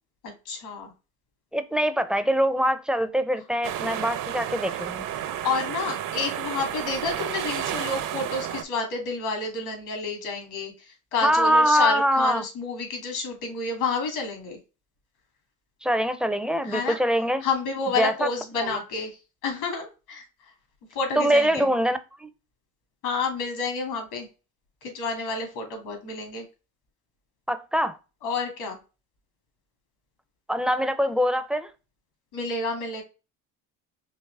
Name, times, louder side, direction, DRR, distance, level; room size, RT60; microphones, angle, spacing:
voice 1, 0.2-0.9 5.4-14.6 16.6-17.0 17.4-19.2 19.4-20.2 20.9-21.7 23.0-24.3 24.8-26.4 28.2-28.8 32.3-33.0, left 4 dB, 75° left, 2.4 m, -29 dB
voice 2, 1.5-5.1 11.2-12.4 15.8-17.5 18.0-18.3 18.6-18.8 21.2-22.3 27.5-28.0 30.5-31.7, equal, ahead, 0.5 m, -23 dB
sound 1, 3.6-8.6, right 10 dB, 60° right, 0.7 m, -31 dB
4.8 x 3.0 x 3.2 m
supercardioid pair, 90°, 38 cm